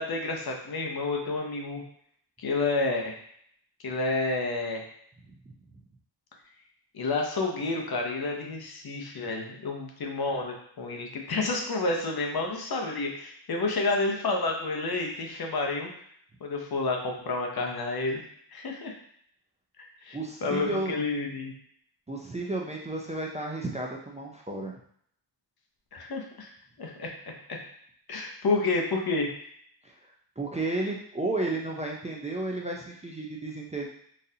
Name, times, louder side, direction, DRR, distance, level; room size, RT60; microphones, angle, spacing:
voice 1, 0.0-1.8 2.4-3.2 3.8-4.9 6.9-15.9 16.4-18.2 18.5-18.9 19.8-21.5 25.9-26.5 26.8-27.6 28.1-29.5, left 3 dB, 60° left, 1 dB, 0.7 m, -30 dB
voice 2, 20.1-21.0 22.1-24.8 29.8-33.9, right 2 dB, 15° right, -2 dB, 0.4 m, -33 dB
4.0 x 2.5 x 2.7 m, 0.66 s
wide cardioid pair, 110°, 42 cm